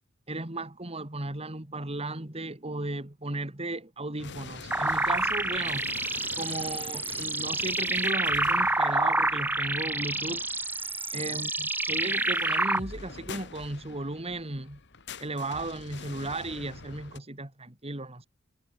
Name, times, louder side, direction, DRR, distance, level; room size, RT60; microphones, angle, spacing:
voice 1, 0.3-5.9 6.4-10.5 11.1-14.8 15.2-18.3, right 2 dB, 30° right, 2.2 m, -35 dB
sound 1, 4.2-17.2, left 4 dB, 55° left, 2.1 m, -45 dB
sound 2, 4.7-12.8, right 2 dB, 10° right, 2.3 m, -28 dB
head